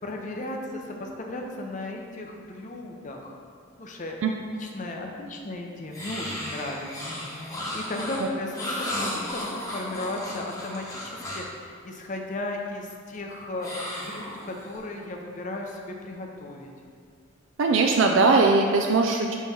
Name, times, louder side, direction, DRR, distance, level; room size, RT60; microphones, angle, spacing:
voice 1, 0.0-3.3 3.8-4.2 4.6-6.9 7.3-13.7 14.1-16.7, left 2 dB, 40° left, 1 dB, 0.6 m, -35 dB
sound 1, 5.9-11.5 13.6-14.8, left 1 dB, 15° left, 1.0 m, -34 dB
voice 2, 17.6-19.3, right 3 dB, 70° right, 2 dB, 0.4 m, -20 dB
5.5 x 3.1 x 5.5 m, 2.1 s
head